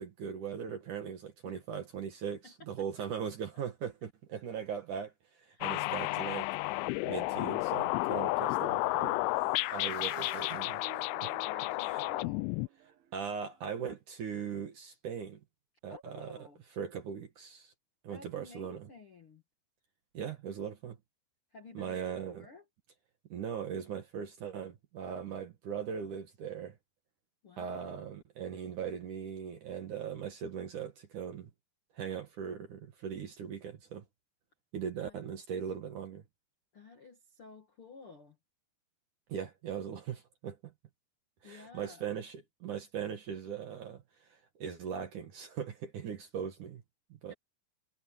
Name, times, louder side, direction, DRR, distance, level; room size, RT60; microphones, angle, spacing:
voice 1, 0.0-5.1 5.5-6.5 7.0-9.2 9.7-10.8 11.2-11.3 11.9-12.0 13.1-15.4 15.8-16.4 16.8-17.7 18.0-18.9 20.1-21.0 21.7-22.5 23.3-26.8 27.6-31.5 32.0-34.0 34.7-36.2 39.3-40.7 41.4-44.0 44.3-46.8 47.2-47.3, right 7 dB, 55° right, 2.7 m, -39 dB
voice 2, 2.4-3.1 5.5-5.7 8.3-8.6 11.4-12.5 15.9-16.6 18.1-19.4 21.5-22.6 27.4-28.1 35.0-35.2 36.7-38.4 41.4-42.1 47.3-47.4, left 3 dB, 50° left, 1.7 m, -53 dB
sound 1, 5.6-12.7, left 22 dB, 85° left, 2.9 m, -32 dB
Motorcycle / Engine, 6.5-13.5, right 10 dB, 85° right, 4.2 m, -54 dB
omnidirectional pair, 5.4 m